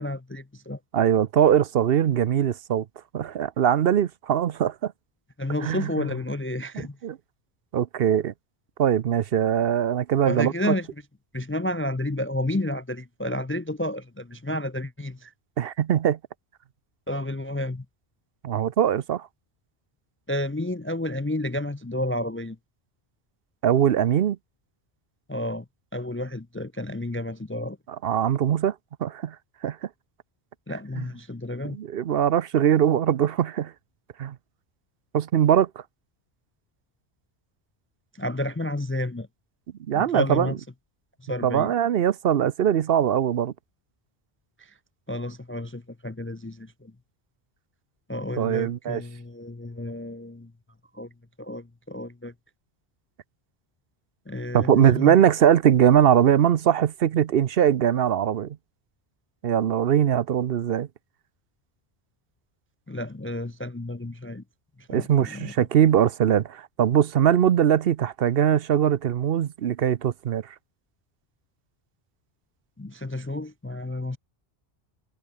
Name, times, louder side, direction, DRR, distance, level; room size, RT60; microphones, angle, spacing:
voice 1, 0.0-0.8 5.4-7.0 10.2-10.9 11.3-15.3 17.1-17.9 20.3-22.6 25.3-25.7 25.9-27.8 30.7-31.8 38.1-39.3 39.9-40.6 41.2-41.7 44.6-44.7 45.1-46.9 48.1-50.5 50.9-51.1 51.4-52.3 54.3-55.2 62.9-64.4 64.8-65.7 72.8-74.2, left 1 dB, 20° left, 0.4 m, -31 dB
voice 2, 0.9-2.8 3.1-4.9 5.6-5.9 7.0-7.2 7.7-8.3 8.8-10.7 15.6-16.2 18.4-19.3 23.6-24.4 28.0-28.7 29.0-29.4 29.6-29.8 31.0-31.1 31.6-33.7 34.2-34.3 35.1-35.7 39.9-40.5 41.4-43.5 48.4-49.0 54.5-58.6 59.4-60.9 64.9-70.5, right 9 dB, 65° right, 0.9 m, -21 dB
omnidirectional pair, 1.1 m